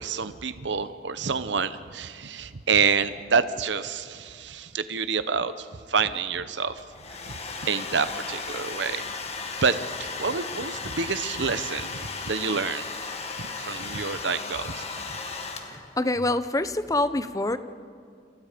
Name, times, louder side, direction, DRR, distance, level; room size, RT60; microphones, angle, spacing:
voice 1, 0.0-6.8 7.3-9.2 9.6-12.9 13.4-14.9, right 5 dB, 75° right, 12 dB, 0.9 m, -28 dB
Domestic sounds home sounds, 6.8-16.0, left 4 dB, 35° left, 2.0 m, -35 dB
voice 2, 15.7-17.6, left 2 dB, 20° left, 12 dB, 0.8 m, -26 dB
29.5 x 28.0 x 5.2 m, 2.2 s
head